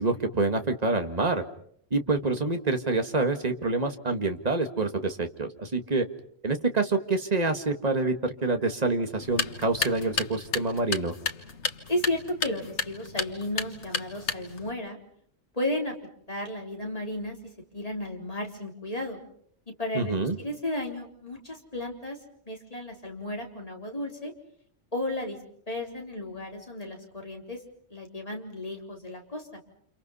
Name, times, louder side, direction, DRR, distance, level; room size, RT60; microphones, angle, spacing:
voice 1, 0.0-1.4 1.9-6.1 6.4-11.1 19.9-20.4, right 3 dB, 35° right, 7 dB, 1.9 m, -27 dB
sound 1, 9.2-14.7, left 5 dB, 85° left, 1.8 m, -33 dB
voice 2, 11.9-15.0 15.5-15.9 16.3-17.4 17.7-19.2 19.7-22.2 22.5-24.3 24.9-25.4 25.7-27.6 27.9-29.6, left 1 dB, 30° left, 1 dB, 4.3 m, -33 dB
30.0 x 28.0 x 5.6 m, 0.65 s
omnidirectional pair, 1.2 m